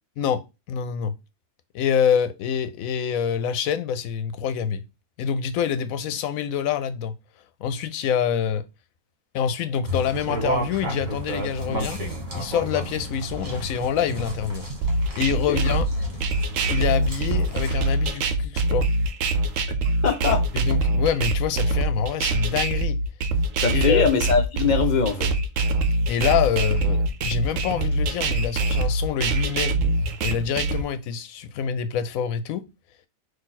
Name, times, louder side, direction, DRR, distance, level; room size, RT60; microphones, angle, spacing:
voice 1, 0.7-1.1 1.7-4.8 5.2-7.1 7.6-8.6 9.3-12.0 12.3-14.7 15.1-15.9 16.7-18.9 20.5-23.0 23.7-24.0 26.1-29.8 30.2-32.6, left 8 dB, 80° left, 1.0 m, -26 dB
sound 1, 9.8-18.0, right 1 dB, 35° right, 1.4 m, -32 dB
sound 2, 14.8-30.8, right 2 dB, 75° right, 1.0 m, -24 dB
voice 2, 20.0-20.4 23.6-25.3 26.6-26.7, left 6 dB, 50° left, 0.5 m, -22 dB
4.1 x 2.6 x 4.1 m
omnidirectional pair, 1.4 m